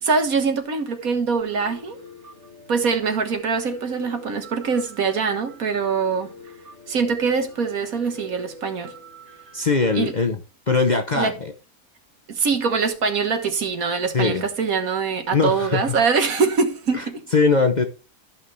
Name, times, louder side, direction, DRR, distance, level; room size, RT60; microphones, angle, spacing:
voice 1, 0.0-2.0 2.7-6.3 6.9-8.9 10.0-10.1 11.1-11.3 12.3-17.2, right 5 dB, 65° right, 1.8 m, -23 dB
Piano, 1.4-10.1, equal, 45° right, 2.9 m, -45 dB
voice 2, 9.5-10.4 10.7-11.3 14.1-14.4 15.3-16.0 16.9-17.0 17.3-17.8, left 4 dB, 35° left, 0.8 m, -20 dB
13.5 x 5.8 x 3.3 m
omnidirectional pair, 1.7 m